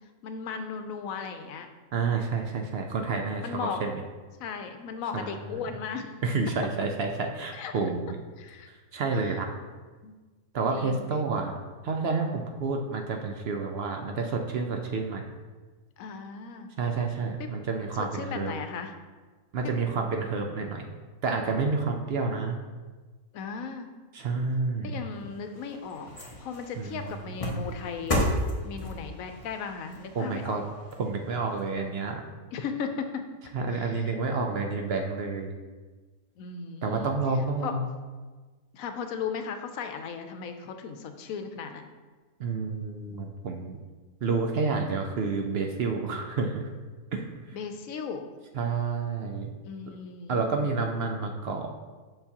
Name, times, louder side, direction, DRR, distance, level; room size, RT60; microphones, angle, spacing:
voice 1, 0.2-1.7 3.4-3.8 4.4-6.1 7.5-7.7 8.4-8.7 9.1-9.4 10.0-10.1 10.7-11.0 16.0-16.7 17.4-17.5 17.9-18.9 19.6-19.7 23.3-23.9 24.8-26.1 26.4-28.3 28.6-30.6 32.5-33.3 33.7-34.1 36.4-37.1 37.6-37.7 38.7-41.9 47.5-48.3 49.6-50.7, left 6 dB, 85° left, 7 dB, 1.0 m, -36 dB
voice 2, 1.9-4.0 5.1-5.4 6.2-8.2 8.7-9.5 10.5-11.6 11.8-15.2 16.8-18.5 19.5-20.8 21.2-22.6 24.1-25.0 26.8-27.0 30.1-30.6 31.0-32.2 33.5-35.5 36.8-37.9 42.4-43.8 44.2-46.7 47.1-47.3 48.5-49.5 50.3-51.7, right 4 dB, 60° right, 3 dB, 0.7 m, -29 dB
sound 1, 25.1-31.6 32.1-32.2, left 1 dB, 30° left, 1.0 m, -34 dB
6.9 x 5.8 x 2.8 m, 1.4 s
omnidirectional pair, 1.4 m